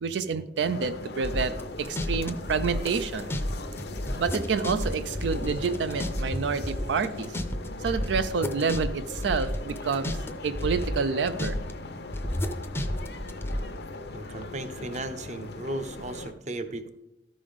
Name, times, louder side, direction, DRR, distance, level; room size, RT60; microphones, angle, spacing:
voice 1, 0.0-3.3 4.2-7.4 7.8-10.2 10.4-11.6, right 5 dB, 85° right, 11 dB, 0.4 m, -28 dB
sound 1, 0.6-16.3, left 2 dB, 65° left, 0.7 m, -40 dB
sound 2, 1.2-3.5 3.8-6.4 6.6-10.3 10.5-11.7 12.1-13.6, left 1 dB, 15° left, 0.5 m, -31 dB
sound 3, 2.4-7.4, right 1 dB, 70° right, 1.0 m, -46 dB
voice 2, 14.1-16.9, right 2 dB, 40° right, 9 dB, 0.6 m, -35 dB
13.5 x 5.3 x 3.6 m, 0.92 s
head